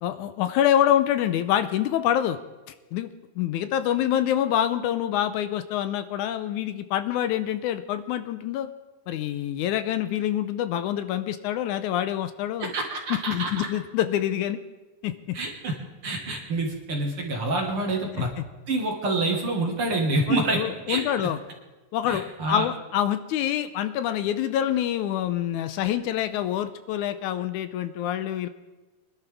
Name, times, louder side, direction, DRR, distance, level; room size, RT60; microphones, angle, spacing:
voice 1, 0.0-2.4 2.9-3.1 3.4-8.7 9.1-12.7 13.3-14.6 15.0-15.4 18.1-18.4 20.3-21.4 21.9-28.5, left 11 dB, 80° left, 11 dB, 1.9 m, -26 dB
voice 2, 12.6-13.7 15.3-15.7 16.0-18.3 18.7-20.6 20.9-21.3 22.1-22.7, right 2 dB, 50° right, 1 dB, 2.3 m, -27 dB
24.0 x 11.5 x 3.5 m, 1.2 s
omnidirectional pair, 3.7 m